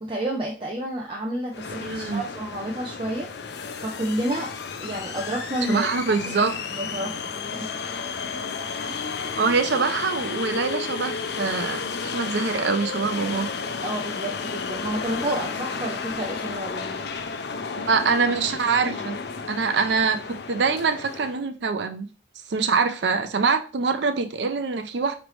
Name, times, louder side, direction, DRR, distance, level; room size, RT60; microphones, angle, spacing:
voice 1, 0.0-3.3 3.8-4.5 4.8-5.9 6.4-6.5 6.8-7.2 8.9-9.1 13.8-17.0, right 1 dB, 30° right, -2 dB, 0.6 m, -30 dB
sound 1, 1.5-21.4, left 5 dB, 65° left, 0.5 m, -32 dB
voice 2, 1.8-2.2 5.7-6.6 9.4-13.5 17.8-19.2 19.5-22.1 22.5-25.1, right 5 dB, 75° right, 8 dB, 0.5 m, -24 dB
5.2 x 3.2 x 3.1 m, 0.36 s
head